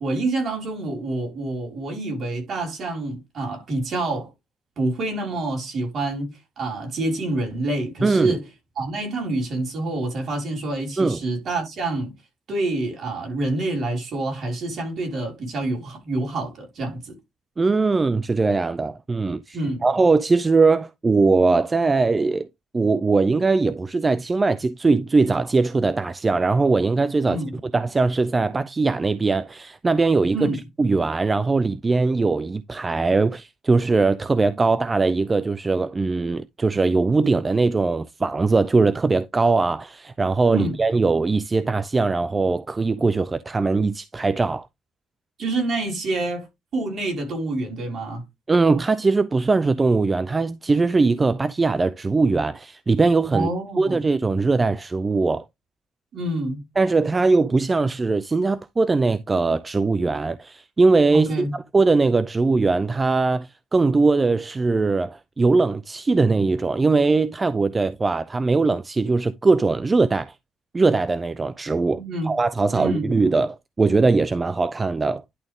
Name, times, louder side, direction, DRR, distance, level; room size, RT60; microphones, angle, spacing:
voice 1, 0.0-4.3 4.8-8.4 8.8-12.1 12.5-17.2 19.5-19.8 27.3-27.6 30.3-30.6 40.5-40.8 45.4-46.5 46.7-48.2 53.3-54.0 56.1-56.7 61.1-61.5 72.0-72.3 72.7-73.1, right 2 dB, 55° right, 5.0 m, -27 dB
voice 2, 8.0-8.4 11.0-11.2 17.6-22.5 22.7-30.5 30.8-44.7 48.5-53.5 53.8-55.4 56.8-70.3 70.7-75.2, right 3 dB, 25° right, 0.5 m, -21 dB
11.0 x 3.7 x 3.5 m
cardioid pair, 90°, 0 cm